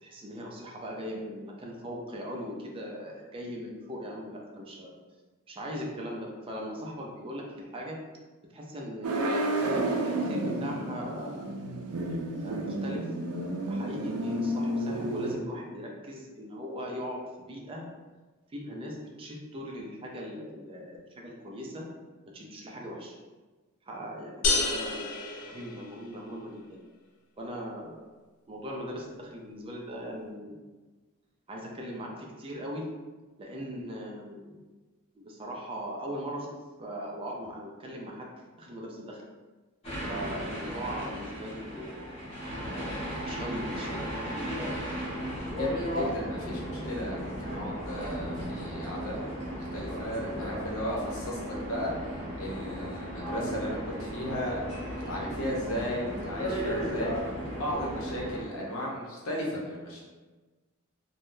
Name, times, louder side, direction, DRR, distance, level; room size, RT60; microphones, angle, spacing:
voice 1, 0.0-4.9 5.5-8.0 8.5-9.4 9.9-11.6 12.4-13.1 13.7-17.9 18.5-21.9 22.3-23.1 23.9-26.8 27.4-28.0 28.5-30.6 31.5-32.8 33.4-34.6 35.1-36.5 36.8-39.2 40.1-42.1 42.7-44.2, equal, 25° right, -1 dB, 0.4 m, -39 dB
sound 1, 9.0-15.3, right 1 dB, 85° right, 0.4 m, -31 dB
sound 2, 24.4-26.3, left 3 dB, 90° left, 0.4 m, -30 dB
sound 3, 39.8-58.4, equal, 30° left, 0.9 m, -35 dB
voice 2, 45.5-51.9 52.4-54.6 54.9-57.1 57.5-60.0, equal, 70° left, -3 dB, 0.8 m, -35 dB
3.4 x 2.2 x 2.6 m, 1.3 s
head